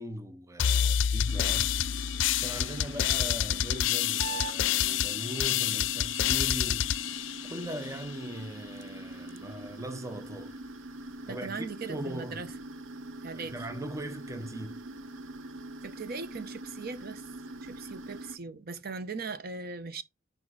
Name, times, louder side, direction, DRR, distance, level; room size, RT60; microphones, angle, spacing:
voice 1, 0.0-1.8 2.1-10.5 11.3-12.4 13.3-14.8, right 1 dB, 15° right, 0.5 m, -40 dB
sound 1, 0.6-8.1, left 10 dB, 70° left, 0.4 m, -28 dB
sound 2, 1.3-18.4, right 2 dB, 90° right, 0.6 m, -43 dB
voice 2, 11.3-12.5 13.2-13.6 15.8-17.2 17.6-20.0, right 4 dB, 50° right, 0.7 m, -39 dB
6.4 x 4.9 x 4.7 m
head